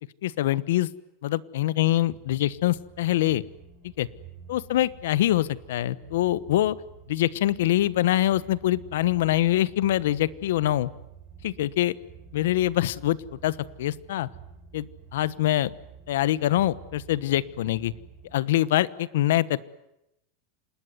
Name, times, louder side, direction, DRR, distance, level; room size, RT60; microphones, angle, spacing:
voice 1, 0.2-0.9 1.2-3.4 4.0-4.1 4.5-6.8 7.1-10.9 11.4-11.9 12.3-13.2 13.4-14.3 14.7-14.9 15.1-15.7 16.1-17.9 18.3-19.6, left 14 dB, 75° left, 18 dB, 1.1 m, -24 dB
sound 1, 2.1-18.4, right 7 dB, 30° right, 4.1 m, -49 dB
27.0 x 20.5 x 9.7 m, 0.87 s
supercardioid pair, 175°, 0 cm